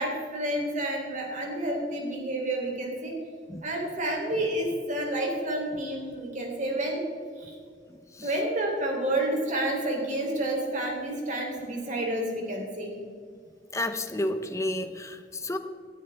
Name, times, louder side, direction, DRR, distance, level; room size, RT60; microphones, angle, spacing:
voice 1, 0.0-3.1 3.6-7.0 7.4-7.6 8.2-13.0, right 1 dB, 40° right, 0 dB, 3.5 m, -29 dB
voice 2, 13.7-15.6, left 1 dB, 15° left, 8 dB, 0.9 m, -31 dB
17.5 x 13.0 x 3.6 m, 2.1 s
head